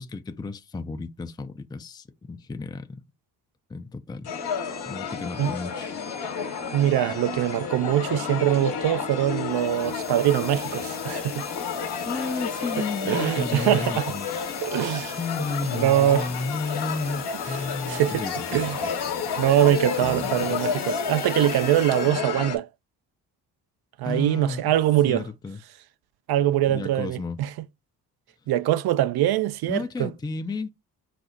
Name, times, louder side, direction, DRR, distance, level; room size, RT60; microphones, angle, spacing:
voice 1, 0.0-3.0 3.7-4.3 4.8-6.0 12.1-14.3 15.2-18.9 20.0-20.6 24.0-24.7 25.1-25.6 26.6-27.4 29.7-30.7, left 3 dB, 10° left, 0.4 m, -33 dB
sound 1, 4.2-22.6, left 6 dB, 55° left, 1.1 m, -31 dB
voice 2, 6.7-11.5 13.0-14.1 14.6-15.2 15.6-16.3 17.9-18.2 18.5-18.8 19.4-22.7 24.0-25.3 26.3-27.5 28.5-30.1, right 12 dB, 50° right, 0.5 m, -23 dB
sound 2, 9.5-22.2, left 7 dB, 35° left, 0.8 m, -42 dB
5.1 x 2.0 x 3.8 m
hypercardioid pair, 45°, 49 cm